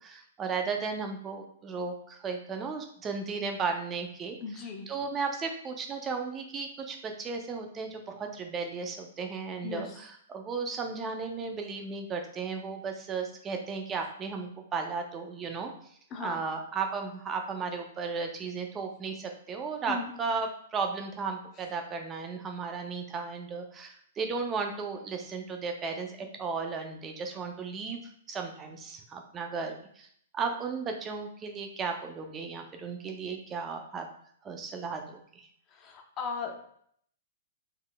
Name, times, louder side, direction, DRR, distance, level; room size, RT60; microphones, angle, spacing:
voice 1, 0.0-4.4 4.9-15.7 16.2-28.0 28.3-30.1 30.3-34.1 34.4-35.5, right 5 dB, 20° right, 3 dB, 0.4 m, -35 dB
voice 2, 4.4-4.9 9.6-10.0 16.1-16.4 19.9-20.1 35.7-36.5, left 5 dB, 30° left, 4 dB, 0.6 m, -37 dB
3.7 x 3.1 x 2.2 m, 0.64 s
hypercardioid pair, 140°, 0 cm